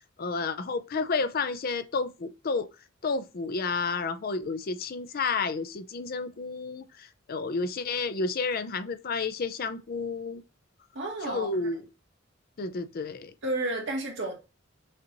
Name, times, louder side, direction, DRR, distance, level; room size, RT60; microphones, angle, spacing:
voice 1, 0.2-2.7 3.0-10.4 11.2-11.8 12.6-13.3, left 4 dB, 50° left, 0.5 m, -31 dB
voice 2, 10.9-11.7 13.4-14.3, right 2 dB, 65° right, 1.9 m, -31 dB
6.5 x 2.9 x 2.6 m
head